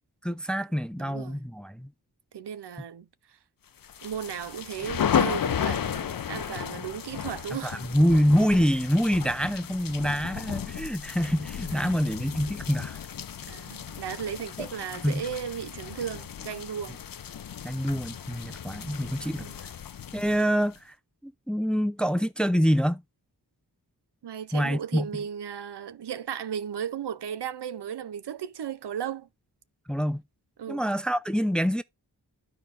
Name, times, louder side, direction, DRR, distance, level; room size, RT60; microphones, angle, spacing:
voice 1, 0.2-1.9 7.6-13.0 14.6-14.7 15.0-15.2 17.6-19.5 20.1-20.9 21.2-23.0 24.5-25.1 29.9-30.2 30.7-31.8, equal, ahead, 0.5 m, -26 dB
voice 2, 1.0-1.4 2.3-3.4 4.0-7.9 11.7-11.8 13.5-17.0 19.4-19.6 24.2-29.3 30.6-30.9, right 8 dB, 85° right, 0.6 m, -35 dB
sound 1, 3.8-20.8, left 8 dB, 60° left, 0.6 m, -34 dB
12.5 x 4.6 x 2.5 m
wide cardioid pair, 55°, 40 cm